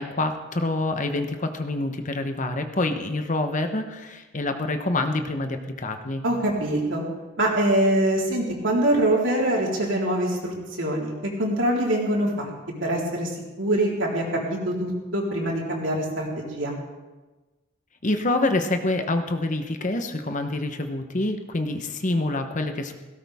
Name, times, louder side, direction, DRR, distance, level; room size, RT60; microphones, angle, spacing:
voice 1, 0.0-6.2 18.0-22.9, left 2 dB, 40° left, 7 dB, 1.0 m, -26 dB
voice 2, 6.2-7.0 7.4-11.1 11.4-12.5 12.8-13.3 13.6-16.7, right 1 dB, 70° right, -3 dB, 3.9 m, -24 dB
17.5 x 17.0 x 3.6 m, 1.2 s
head